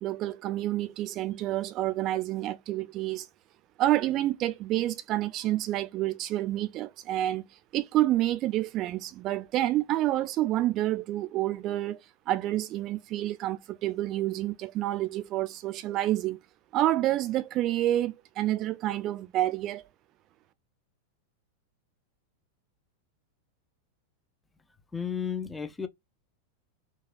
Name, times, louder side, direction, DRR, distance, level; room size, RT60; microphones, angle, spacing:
voice 1, 0.0-3.3 3.8-7.4 7.7-12.0 12.3-16.4 16.7-19.9, right 14 dB, 35° right, 0.4 m, -28 dB
voice 2, 24.9-25.9, left 7 dB, 10° left, 0.6 m, -33 dB
4.6 x 2.4 x 2.3 m
figure-of-eight pair, 90°, 0 cm